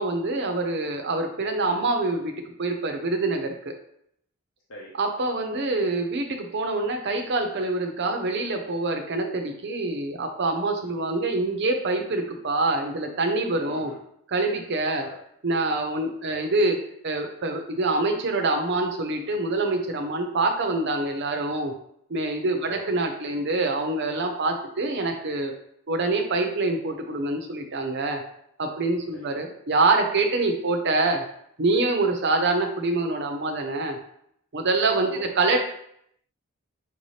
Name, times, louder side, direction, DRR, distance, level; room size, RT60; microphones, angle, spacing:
voice 1, 0.0-2.3 2.6-3.7 5.0-13.9 14.3-15.1 15.4-16.8 17.0-21.7 22.1-25.5 25.9-28.2 28.6-31.2 31.6-34.0 34.5-35.6, right 2 dB, 50° right, 4 dB, 0.6 m, -25 dB
voice 2, 13.6-14.0 14.9-15.2 16.2-16.5 22.6-22.9 29.1-29.4 35.0-35.6, left 2 dB, 60° left, -3 dB, 0.8 m, -43 dB
5.7 x 2.8 x 3.2 m, 0.70 s
head